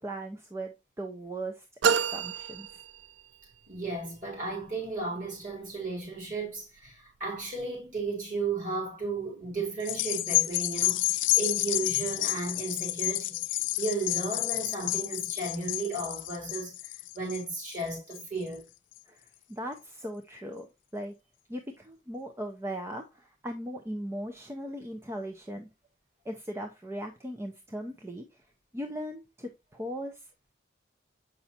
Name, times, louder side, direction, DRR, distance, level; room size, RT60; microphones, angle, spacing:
voice 1, 0.0-2.8 19.1-19.2 19.5-20.7 20.9-21.1 21.5-25.7 26.2-28.5 28.7-30.3, right 1 dB, 15° right, 0.5 m, -38 dB
sound 1, 1.8-3.5, right 6 dB, 70° right, 0.3 m, -29 dB
voice 2, 3.7-13.4 13.8-18.6, right 3 dB, 45° right, 4.0 m, -34 dB
sound 2, 9.8-18.5 19.0-19.1, left 17 dB, 75° left, 0.4 m, -30 dB
7.0 x 5.3 x 2.7 m
head